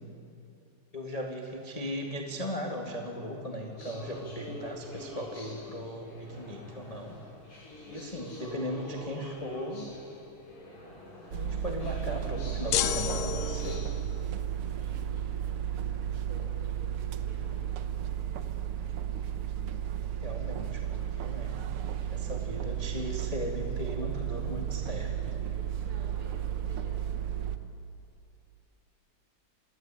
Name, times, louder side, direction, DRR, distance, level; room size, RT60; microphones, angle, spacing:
voice 1, 0.9-7.1 7.9-9.9 11.3-13.8 19.6-19.8 20.2-21.6 22.1-25.1, equal, 15° left, 1 dB, 1.4 m, -37 dB
sound 1, 3.8-13.9, left 2 dB, 60° left, 7.7 m, -45 dB
voice 2, 8.0-8.4 14.7-17.7 24.8-27.4, right 1 dB, 40° right, 0 dB, 6.2 m, -54 dB
sound 2, 11.3-27.6, right 10 dB, 65° right, 1.4 m, -33 dB
sound 3, 12.7-14.1, left 11 dB, 85° left, 2.8 m, -31 dB
27.0 x 21.5 x 9.1 m, 2.7 s
omnidirectional pair, 3.9 m